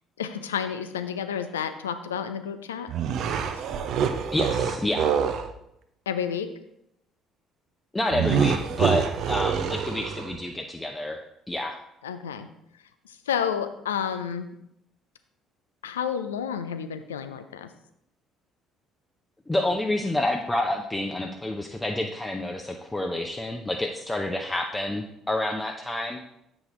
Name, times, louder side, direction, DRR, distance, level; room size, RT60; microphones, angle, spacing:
voice 1, 0.2-2.9 3.5-3.6 6.1-6.5 12.0-12.5 13.1-14.5 15.8-17.7, left 8 dB, 80° left, 9 dB, 0.4 m, -30 dB
sound 1, 2.9-5.5 8.1-10.4, right 7 dB, 55° right, 0.5 m, -26 dB
voice 2, 4.3-5.1 7.9-11.2 11.5-11.7 19.5-26.2, left 1 dB, 15° left, 3 dB, 0.6 m, -28 dB
8.2 x 4.9 x 3.8 m, 0.79 s
figure-of-eight pair, 50°, 0 cm